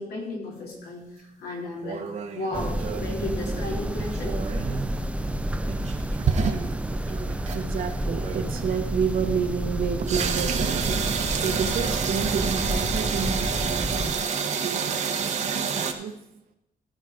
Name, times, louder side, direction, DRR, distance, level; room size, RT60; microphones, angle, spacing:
voice 1, 0.0-2.1 2.3-4.3 5.9-6.1, left 2 dB, 80° left, -3 dB, 4.0 m, -34 dB
sound 1, 1.8-3.1 4.0-5.0 5.7-7.6 8.1-8.5 10.1-15.9, right 6 dB, 50° right, 1.0 m, -29 dB
sound 2, 2.5-14.1, right 1 dB, 10° right, 0.5 m, -30 dB
voice 2, 7.5-16.1, right 6 dB, 65° right, 6 dB, 1.2 m, -30 dB
15.0 x 5.7 x 5.1 m, 0.86 s
cardioid pair, 155°, 16 cm